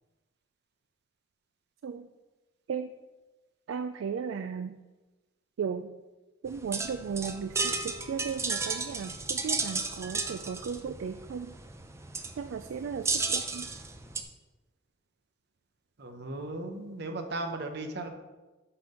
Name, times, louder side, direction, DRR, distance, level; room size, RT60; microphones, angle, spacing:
voice 1, 3.7-4.7 5.6-5.9 6.4-11.5 12.4-13.7, right 6 dB, 75° right, 9 dB, 0.3 m, -35 dB
sound 1, 6.5-14.2, right 4 dB, 15° right, 0.5 m, -33 dB
voice 2, 16.0-18.1, right 2 dB, 55° right, 6 dB, 0.9 m, -36 dB
6.0 x 5.8 x 5.1 m, 1.2 s
head